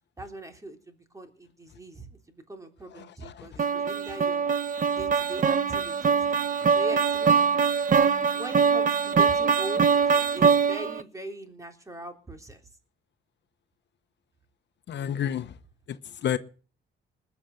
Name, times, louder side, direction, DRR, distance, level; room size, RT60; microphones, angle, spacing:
voice 1, 0.2-4.4 4.9-6.3 6.7-7.5 8.3-12.6, right 1 dB, 15° right, 3.6 m, -41 dB
sound 1, 3.6-11.0, right 6 dB, 45° right, 1.1 m, -23 dB
voice 2, 14.9-15.5 15.9-16.4, left 9 dB, 65° left, 1.1 m, -29 dB
20.0 x 7.2 x 7.8 m
cardioid pair, 90°, 20 cm